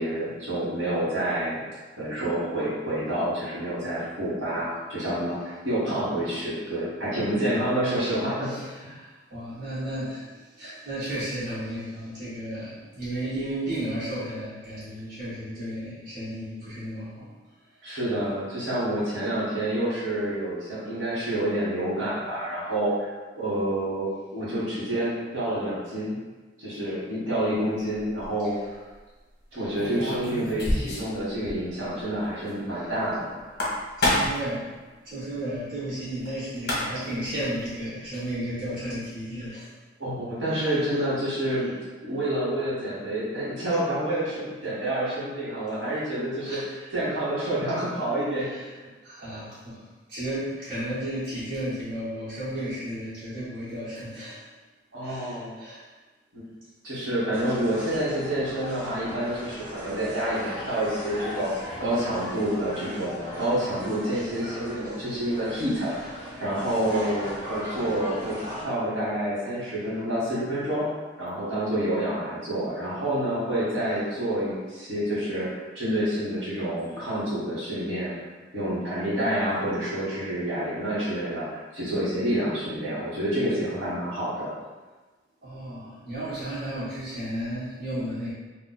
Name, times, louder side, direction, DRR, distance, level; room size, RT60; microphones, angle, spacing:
voice 1, 0.0-1.6 2.0-8.5 8.8-8.9 17.8-26.2 26.6-28.5 29.5-33.3 40.0-41.8 42.0-48.5 54.9-55.5 56.3-56.4 56.8-61.5 61.8-65.9 66.4-70.9 71.2-75.5 75.7-78.2 78.5-84.5, right 1 dB, 70° right, -9 dB, 1.4 m, -28 dB
voice 2, 8.4-17.3 29.5-29.7 32.7-32.8 34.0-34.8 35.0-39.7 40.5-40.6 45.9-46.0 46.4-46.9 48.4-48.7 49.0-54.4 55.0-55.8 76.6-77.5 85.4-88.3, right 1 dB, 45° right, -13 dB, 1.1 m, -34 dB
sound 1, 27.9-28.3 29.8-31.2 31.5-31.6 31.9-32.0 33.4-34.5 36.3-36.4 36.6-37.1, left 1 dB, 55° left, 0.9 m, -27 dB
sound 2, 57.3-68.6, equal, 20° right, 1.1 m, -38 dB
2.6 x 2.4 x 3.9 m, 1.3 s
head